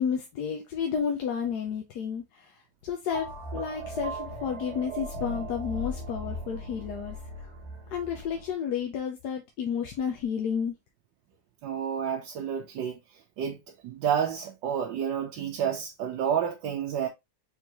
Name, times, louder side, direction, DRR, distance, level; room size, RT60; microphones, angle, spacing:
voice 1, 0.0-7.2 7.9-10.7, left 7 dB, 65° left, 1.2 m, -31 dB
sound 1, 3.1-8.5, right 1 dB, 45° right, 1.2 m, -38 dB
voice 2, 11.6-13.0 13.4-17.1, right 8 dB, 85° right, 1.4 m, -30 dB
4.6 x 3.6 x 2.9 m
omnidirectional pair, 2.0 m